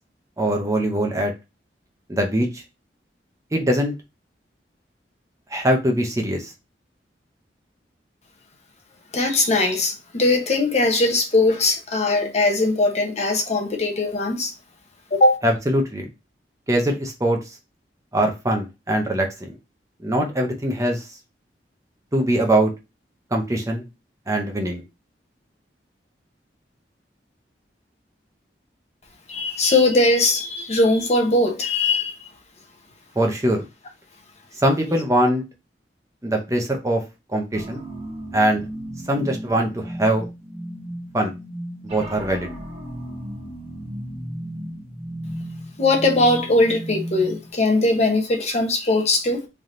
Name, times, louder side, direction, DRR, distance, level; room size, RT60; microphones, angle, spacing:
voice 1, 0.4-1.3 2.1-2.6 3.5-3.9 5.5-6.5 15.4-16.1 16.7-17.4 18.1-19.6 20.0-21.0 22.1-22.7 23.3-23.8 24.3-24.8 33.2-33.6 34.6-35.4 36.2-37.0 37.3-37.8 38.3-38.6 39.1-40.3 41.1-41.3 41.8-42.5, right 1 dB, 20° right, 0.7 m, -22 dB
voice 2, 9.1-14.5 15.1-15.4 29.3-32.1 45.8-49.5, left 2 dB, 40° left, 0.8 m, -20 dB
sound 1, 37.5-47.5, equal, 35° right, 1.6 m, -35 dB
3.4 x 2.8 x 3.8 m
head